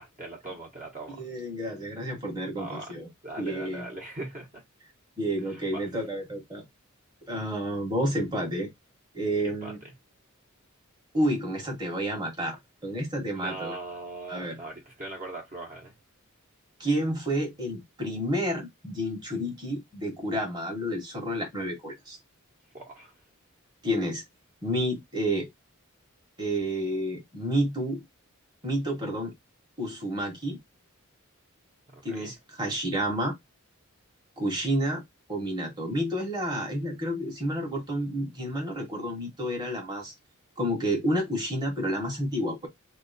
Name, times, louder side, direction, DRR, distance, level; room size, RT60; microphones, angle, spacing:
voice 1, 0.0-1.2 2.5-2.9 3.2-4.6 5.5-5.9 9.4-9.9 13.3-15.9 22.7-23.1 31.9-32.3, right 2 dB, 40° right, 1.4 m, -40 dB
voice 2, 1.1-3.1 3.4-3.9 5.2-6.6 7.3-8.7 9.1-9.8 11.1-13.8 14.3-14.6 16.8-22.2 23.8-24.2 24.6-25.5 26.4-28.0 28.6-29.3 29.8-30.6 32.0-33.4 34.4-35.0 35.3-40.1 40.6-42.7, equal, 20° right, 1.5 m, -30 dB
3.0 x 2.9 x 4.2 m
head